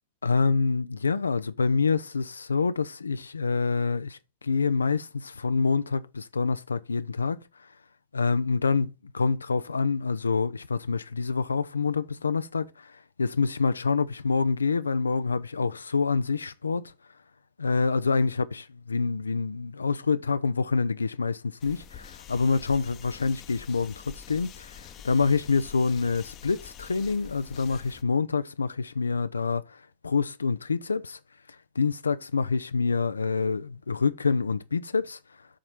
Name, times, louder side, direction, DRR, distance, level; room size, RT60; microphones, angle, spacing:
voice 1, 0.2-7.7 8.1-16.9 17.6-31.2 31.8-35.2, left 4 dB, 75° left, 0.4 m, -27 dB
sound 1, 21.6-28.0, left 8 dB, 35° left, 0.8 m, -47 dB
7.3 x 4.3 x 5.6 m
figure-of-eight pair, 90°, 0 cm